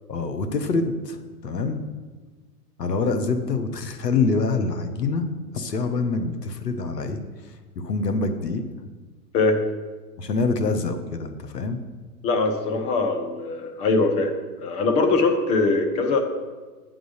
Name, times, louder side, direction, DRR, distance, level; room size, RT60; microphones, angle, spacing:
voice 1, 0.1-1.8 2.8-8.6 10.2-11.8, left 3 dB, 90° left, 8 dB, 1.1 m, -26 dB
voice 2, 12.2-16.2, left 3 dB, 15° left, 4 dB, 0.5 m, -22 dB
9.4 x 3.8 x 6.5 m, 1.3 s
hypercardioid pair, 120°, 47 cm